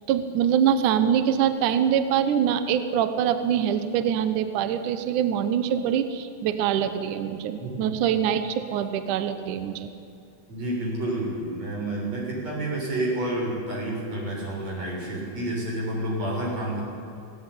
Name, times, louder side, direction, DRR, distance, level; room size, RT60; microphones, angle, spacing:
voice 1, 0.1-9.9, right 9 dB, 70° right, 10 dB, 2.4 m, -24 dB
voice 2, 7.6-7.9 10.5-16.8, right 1 dB, 50° right, -3 dB, 8.0 m, -29 dB
19.5 x 18.0 x 9.9 m, 2.5 s
omnidirectional pair, 4.0 m